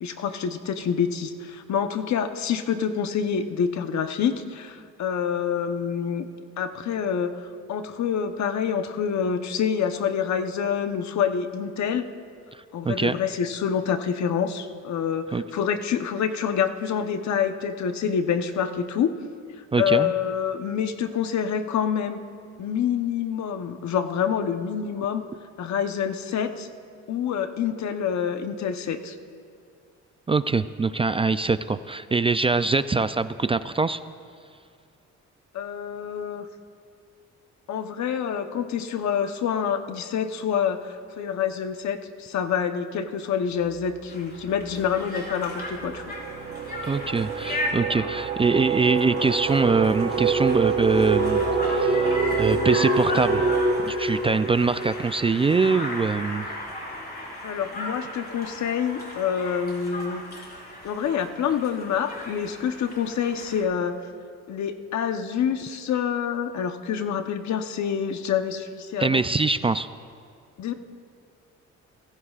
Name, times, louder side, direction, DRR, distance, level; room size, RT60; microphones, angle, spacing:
voice 1, 0.0-6.3 6.6-12.1 12.7-19.2 19.8-22.2 22.6-25.2 25.6-26.7 27.1-29.1 35.5-36.5 37.7-46.1 57.4-60.2 60.8-64.0 64.5-69.2 70.6-70.7, left 7 dB, 65° left, 8 dB, 1.0 m, -27 dB
voice 2, 12.5-13.2 15.3-15.4 19.7-20.1 30.3-34.0 46.9-53.4 53.9-56.5 69.0-69.9, right 4 dB, 20° right, 12 dB, 0.3 m, -23 dB
sound 1, 43.7-43.9 44.2-55.8, right 4 dB, 40° right, 1.2 m, -26 dB
Conversation, 44.1-63.6, left 1 dB, 30° left, 4.5 m, -36 dB
25.0 x 16.0 x 2.5 m, 2.3 s
cardioid pair, 90°, 30 cm